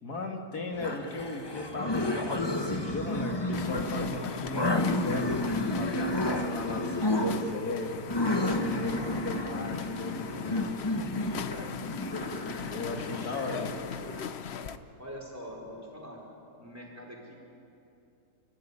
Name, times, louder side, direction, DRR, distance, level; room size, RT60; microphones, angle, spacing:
voice 1, 0.0-8.0 8.6-10.7 12.6-13.8, left 2 dB, 80° left, 2 dB, 2.5 m, -37 dB
sound 1, 0.7-14.2, left 1 dB, 20° left, 1.1 m, -31 dB
sound 2, 3.5-14.8, left 7 dB, 50° left, 0.9 m, -39 dB
voice 2, 13.0-13.7 15.0-16.2 16.6-17.3, equal, 10° right, -1 dB, 4.7 m, -44 dB
30.0 x 14.5 x 9.9 m, 2.7 s
omnidirectional pair, 1.6 m